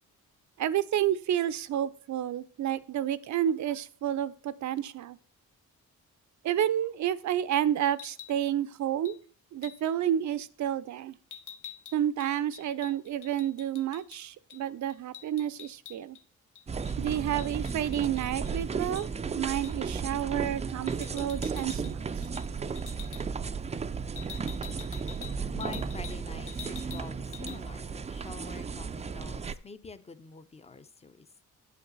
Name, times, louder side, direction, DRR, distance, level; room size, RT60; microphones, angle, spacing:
voice 1, 0.6-5.2 6.4-9.2 9.5-11.1 11.9-16.2 17.0-19.1 19.4-22.0, right 11 dB, 65° right, 15 dB, 0.6 m, -30 dB
sound 1, 7.9-8.4 9.1-9.2 9.6-9.9 11.3-14.2 14.5-14.6 14.9-16.2 16.6-18.5 19.0-19.1 19.6-19.9 20.9-21.9 22.2-22.5 22.8-23.2 24.2-26.2 26.5-27.1 27.3-27.6, left 9 dB, 70° left, 0.8 m, -47 dB
sound 2, 16.7-29.5, right 5 dB, 20° right, 0.4 m, -34 dB
voice 2, 25.5-31.3, left 4 dB, 20° left, 13 dB, 0.6 m, -46 dB
8.6 x 8.1 x 4.0 m, 0.41 s
cardioid pair, 120°, 31 cm